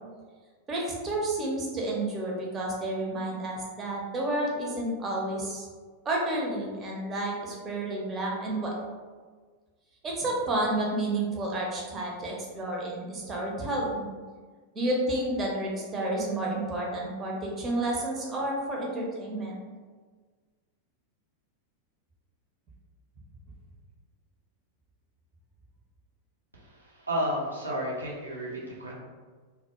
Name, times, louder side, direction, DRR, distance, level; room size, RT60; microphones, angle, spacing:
voice 1, 0.7-5.7 6.0-8.7 10.0-14.0 14.7-19.6, right 1 dB, 25° right, -3 dB, 0.5 m, -30 dB
voice 2, 26.8-28.9, equal, 85° right, -5 dB, 0.5 m, -32 dB
2.1 x 2.0 x 2.8 m, 1.5 s
figure-of-eight pair, 90°, 0 cm